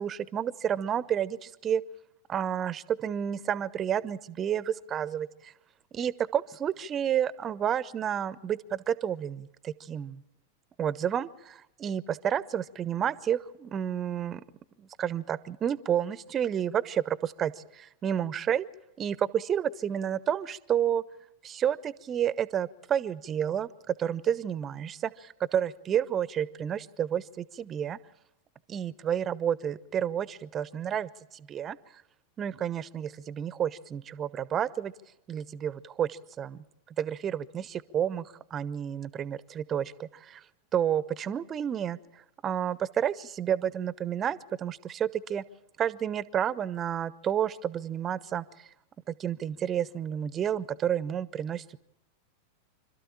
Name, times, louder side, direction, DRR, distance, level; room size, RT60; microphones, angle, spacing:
voice 1, 0.0-1.8 2.3-5.5 5.9-10.2 10.8-14.4 14.8-18.7 19.0-21.0 21.4-28.0 28.7-31.8 32.4-34.9 35.3-36.6 37.0-40.4 40.7-42.0 42.4-45.4 45.8-48.7 49.1-51.8, right 9 dB, 25° right, 20 dB, 0.6 m, -30 dB
26.5 x 13.0 x 8.8 m, 0.92 s
figure-of-eight pair, 90°, 0 cm